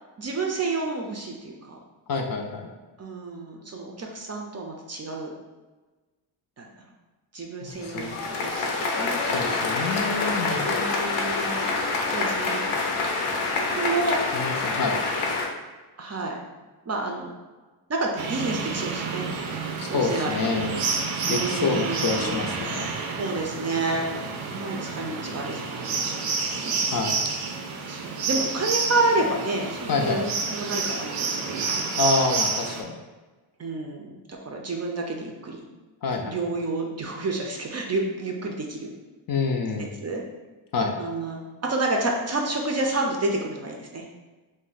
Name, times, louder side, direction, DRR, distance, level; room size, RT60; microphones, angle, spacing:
voice 1, 0.2-1.8 3.0-5.3 6.6-6.7 7.3-9.2 10.6-11.7 12.1-12.6 13.8-14.2 16.0-16.4 16.9-17.3 17.9-19.3 19.9-20.4 21.3-22.4 23.2-24.1 24.5-25.6 26.0-26.3 26.6-26.7 27.9-31.9 33.6-35.6 36.3-38.9 40.0-40.2 41.0-44.0, right 2 dB, 35° right, 1 dB, 0.4 m, -29 dB
voice 2, 2.1-2.7 7.6-8.1 9.3-10.9 14.3-15.0 19.8-20.8 21.3-22.9 26.9-27.2 29.9-30.3 32.0-33.0 36.0-36.4 39.3-39.9 40.7-41.0, left 4 dB, 50° left, 3 dB, 0.4 m, -27 dB
sound 1, 7.7-15.5, left 3 dB, 85° left, 0.7 m, -26 dB
sound 2, 18.2-32.8, right 4 dB, 90° right, 0.6 m, -29 dB
2.5 x 2.1 x 3.9 m, 1.3 s
cardioid pair, 85°, 49 cm